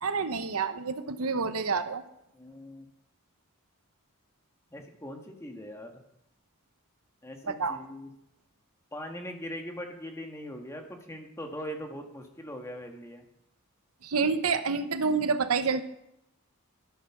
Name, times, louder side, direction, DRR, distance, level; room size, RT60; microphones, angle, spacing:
voice 1, 0.0-2.0 7.5-7.8 14.0-15.8, right 5 dB, 80° right, 10 dB, 0.9 m, -28 dB
voice 2, 2.3-2.9 4.7-5.9 7.2-8.1 8.9-13.3, equal, 15° left, 3 dB, 1.5 m, -41 dB
12.5 x 11.0 x 6.0 m, 0.81 s
head